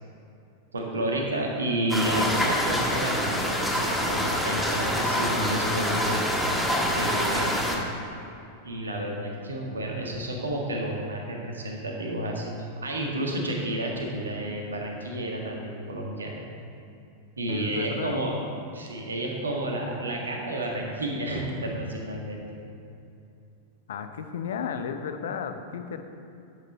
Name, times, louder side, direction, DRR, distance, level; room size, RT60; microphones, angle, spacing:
voice 1, 0.7-6.2 6.8-7.6 8.6-16.4 17.4-18.4 18.7-22.4, right 1 dB, 75° right, 0 dB, 1.7 m, -31 dB
sound 1, 1.9-7.8, equal, ahead, 1.5 m, -26 dB
voice 2, 17.5-18.2 23.9-26.0, left 7 dB, 60° left, 7 dB, 0.7 m, -33 dB
11.0 x 8.3 x 4.2 m, 2.7 s
figure-of-eight pair, 90°, 0 cm